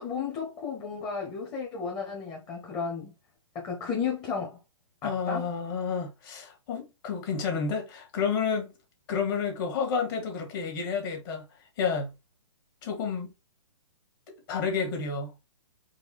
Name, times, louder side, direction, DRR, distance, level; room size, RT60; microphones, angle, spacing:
voice 1, 0.0-3.1 3.5-4.6 5.0-5.5, left 6 dB, 25° left, 1.1 m, -33 dB
voice 2, 5.0-8.7 9.1-11.4 11.8-12.1 12.8-13.3 14.5-15.3, left 5 dB, 45° left, 1.9 m, -30 dB
4.7 x 2.4 x 4.1 m
hypercardioid pair, 130°, 16 cm